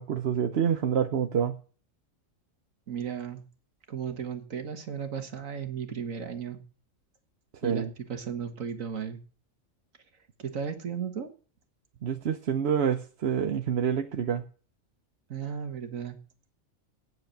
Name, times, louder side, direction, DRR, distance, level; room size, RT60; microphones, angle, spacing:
voice 1, 0.0-1.6 7.6-7.9 12.0-14.4, right 8 dB, 55° right, 7 dB, 1.0 m, -27 dB
voice 2, 2.9-3.5 3.9-6.6 7.6-9.2 10.4-11.3 15.3-16.2, right 7 dB, 75° right, 8 dB, 1.9 m, -35 dB
9.3 x 8.0 x 8.6 m, 0.39 s
omnidirectional pair, 1.4 m